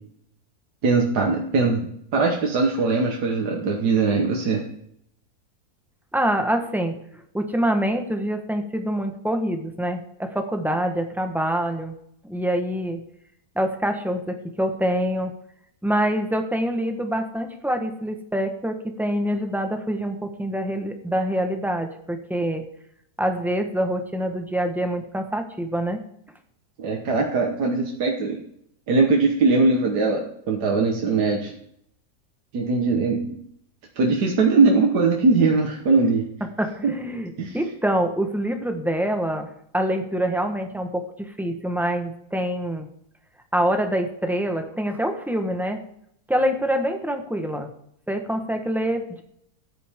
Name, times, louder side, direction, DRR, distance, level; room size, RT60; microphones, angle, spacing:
voice 1, 0.8-4.6 26.8-28.4 28.9-31.6 32.5-33.4 34.0-36.2 36.8-36.9 37.4-37.6, right 3 dB, 75° right, 1 dB, 1.8 m, -21 dB
voice 2, 6.1-6.9 7.3-11.9 12.2-13.0 13.5-15.3 15.8-22.7 23.2-26.0 36.6-42.9 43.5-45.8 46.3-47.7 48.1-49.2, right 1 dB, ahead, 5 dB, 0.9 m, -25 dB
14.0 x 10.0 x 3.6 m, 0.70 s
omnidirectional pair, 1.7 m